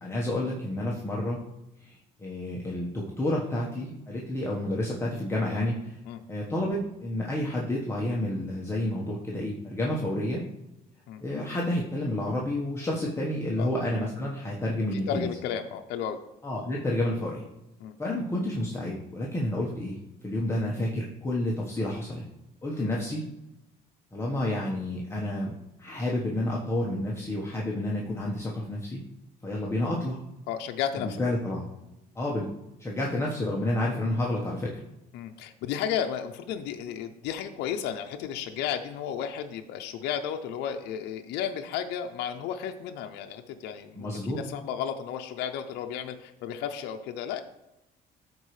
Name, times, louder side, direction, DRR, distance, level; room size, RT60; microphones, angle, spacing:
voice 1, 0.0-1.4 1.8-6.0 6.3-10.4 11.2-15.3 16.4-17.4 18.0-20.0 20.2-22.2 22.6-23.2 24.1-29.0 29.4-30.2 31.0-31.7 32.1-32.5 32.8-34.7 43.9-44.4, left 1 dB, 15° left, -4 dB, 1.2 m, -30 dB
voice 2, 14.9-16.2 17.8-18.0 22.8-23.0 30.5-31.2 35.1-47.4, left 8 dB, 85° left, 5 dB, 0.6 m, -33 dB
13.5 x 4.5 x 3.2 m, 0.95 s
cardioid pair, 110°, 17 cm